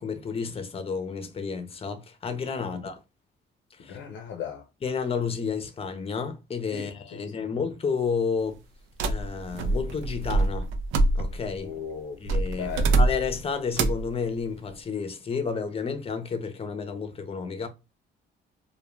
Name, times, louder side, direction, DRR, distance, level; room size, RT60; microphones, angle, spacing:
voice 1, 0.0-3.0 3.8-4.0 4.8-8.6 9.1-10.7 11.1-11.7 12.2-17.7, left 5 dB, 30° left, 0.5 m, -31 dB
voice 2, 3.9-4.6 6.7-7.4 11.6-12.2 12.6-13.0, left 7 dB, 80° left, 0.5 m, -37 dB
sound 1, 9.0-11.6 12.3-13.4 13.7-14.1, right 2 dB, 85° right, 0.4 m, -25 dB
2.3 x 2.2 x 3.0 m
cardioid pair, 90°, 20 cm